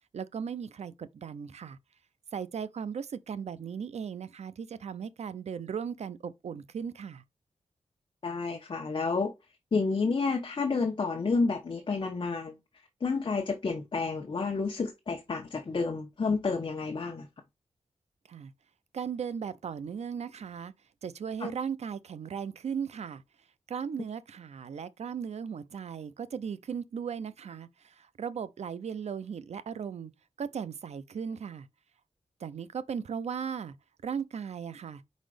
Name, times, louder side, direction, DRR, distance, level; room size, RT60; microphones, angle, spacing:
voice 1, 0.1-1.8 2.3-7.2 18.3-18.5 18.9-20.7 21.0-23.2 23.7-30.1 30.4-31.7 32.4-33.8 34.0-35.0, right 7 dB, 75° right, 0.6 m, -37 dB
voice 2, 8.2-9.3 9.7-12.6 13.0-17.3 21.4-21.5, left 4 dB, 45° left, 1.0 m, -30 dB
5.1 x 4.1 x 4.9 m
wide cardioid pair, 110°, 11 cm